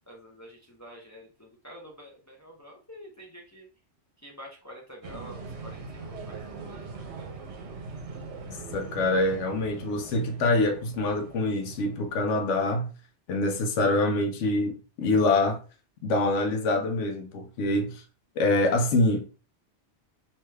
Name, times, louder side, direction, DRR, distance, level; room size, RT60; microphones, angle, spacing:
voice 1, 0.0-3.7 4.2-7.3, equal, 30° left, 0.3 m, -48 dB
sound 1, 5.0-12.2, right 4 dB, 75° right, 0.9 m, -41 dB
voice 2, 8.5-12.9 13.3-15.6 16.0-18.0 18.4-19.3, left 2 dB, 85° left, 0.9 m, -25 dB
2.8 x 2.2 x 3.2 m
omnidirectional pair, 1.2 m